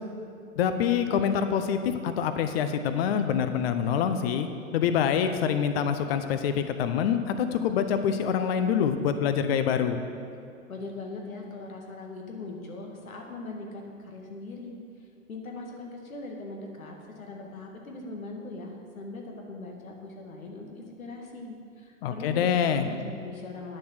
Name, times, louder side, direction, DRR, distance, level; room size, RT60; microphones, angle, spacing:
voice 1, 0.6-4.5 4.7-10.0 22.0-22.9, left 8 dB, 45° left, 9 dB, 0.8 m, -26 dB
voice 2, 10.7-14.8 15.3-22.5 22.8-23.8, left 2 dB, 80° left, 1 dB, 2.2 m, -40 dB
10.0 x 7.2 x 6.4 m, 2.5 s
hypercardioid pair, 125°, 41 cm